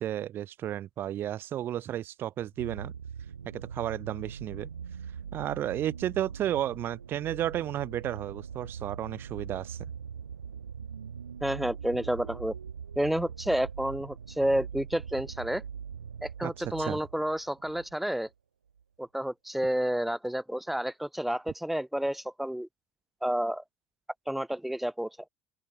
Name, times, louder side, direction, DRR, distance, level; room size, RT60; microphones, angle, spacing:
voice 1, 0.0-2.9 3.5-4.7 5.3-9.9 16.4-16.5 16.8-17.0, right 11 dB, 45° right, 4.3 m, -33 dB
sound 1, 2.5-18.0 18.8-18.9, right 7 dB, 80° right, 5.1 m, -42 dB
voice 2, 11.4-12.5 13.0-15.6 16.2-18.3 19.0-22.7 23.2-23.6 24.3-25.1, right 1 dB, 5° right, 5.3 m, -30 dB
open air
figure-of-eight pair, 65°, 5 cm